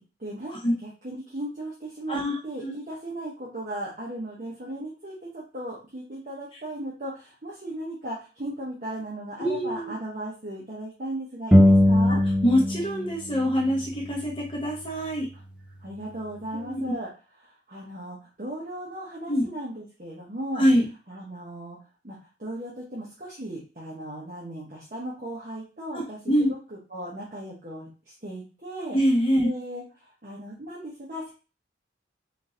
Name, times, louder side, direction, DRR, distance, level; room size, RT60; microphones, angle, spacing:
voice 1, 0.2-2.2 2.4-12.2 15.3-15.4 15.8-17.1 17.4-20.7 21.1-21.8 22.0-26.2 26.5-29.0 29.4-31.3, right 1 dB, 45° right, -5 dB, 1.0 m, -37 dB
voice 2, 2.1-2.8 9.4-9.9 12.1-12.2 12.4-15.3 16.5-16.9 19.3-19.5 20.5-20.8 25.9-26.5 28.9-29.5, equal, 30° left, -1 dB, 0.9 m, -24 dB
sound 1, 11.5-13.0 13.3-15.0, left 1 dB, 5° right, 0.3 m, -21 dB
3.8 x 2.7 x 3.8 m, 0.33 s
head